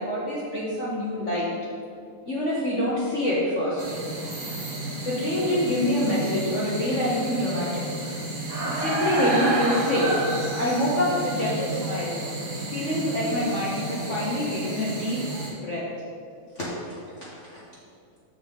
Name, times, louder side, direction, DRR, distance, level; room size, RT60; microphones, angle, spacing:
voice 1, 0.0-1.5 2.3-3.8 5.0-7.8 8.6-12.2 12.7-15.8 16.5-17.6, left 1 dB, 40° left, -8 dB, 1.2 m, -26 dB
sound 1, 3.8-15.5, right 2 dB, 45° right, 1.6 m, -31 dB
7.2 x 6.9 x 3.6 m, 2.3 s
omnidirectional pair, 2.4 m